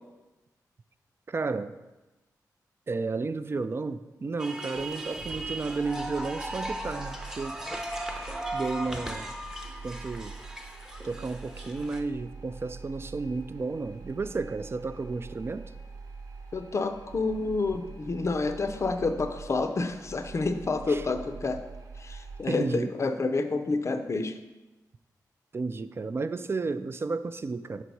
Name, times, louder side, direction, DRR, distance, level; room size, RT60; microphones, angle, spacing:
voice 1, 1.3-1.8 2.9-7.6 7.9-8.0 8.5-9.3 9.8-10.3 11.0-15.7 20.9-21.0 22.5-22.9 25.5-27.8, right 3 dB, 35° right, 12 dB, 0.3 m, -32 dB
sound 1, 4.4-12.0, right 1 dB, 10° right, 0.7 m, -37 dB
sound 2, 5.2-22.4, right 4 dB, 55° right, 0.8 m, -45 dB
voice 2, 16.5-21.6 22.0-24.4, left 3 dB, 45° left, 8 dB, 0.5 m, -29 dB
5.5 x 4.1 x 4.6 m, 1.1 s
cardioid pair, 65°, 7 cm